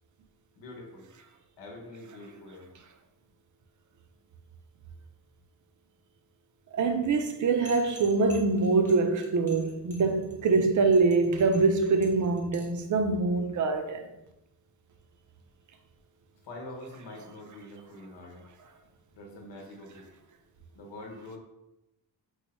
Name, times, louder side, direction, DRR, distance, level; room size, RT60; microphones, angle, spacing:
voice 1, 0.6-1.1 1.6-2.7 16.4-18.5 19.1-20.1 20.7-21.4, left 1 dB, 85° left, 1.0 m, -45 dB
voice 2, 6.7-14.0, right 3 dB, 45° right, 0.5 m, -24 dB
sound 1, 7.6-12.8, left 2 dB, 5° left, 0.7 m, -51 dB
3.1 x 2.1 x 4.1 m
cardioid pair, 80°, 42 cm